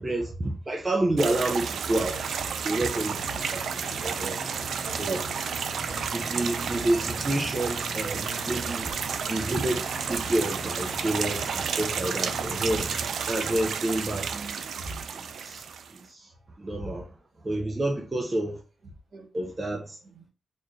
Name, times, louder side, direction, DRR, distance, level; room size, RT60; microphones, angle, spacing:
voice 1, 0.0-2.4 2.6-3.6 4.0-4.4 5.0-5.2 6.1-8.9 9.3-12.9 13.3-14.3 15.1-15.6 15.9-16.3 16.6-17.1 17.4-18.6 19.3-20.0, right 1 dB, 20° right, 0.6 m, -29 dB
sound 1, 1.2-16.0, right 6 dB, 75° right, 0.3 m, -31 dB
voice 2, 2.0-2.4 3.2-3.4 4.8-5.3 6.4-6.9 8.8-8.9 12.4-12.8 14.3-15.0 16.7-17.0 19.1-19.3 20.1-20.3, right 2 dB, 60° right, 2.0 m, -41 dB
sound 2, 2.8-13.1, left 2 dB, 25° left, 0.7 m, -42 dB
4.3 x 2.5 x 3.1 m
wide cardioid pair, 135°, 0 cm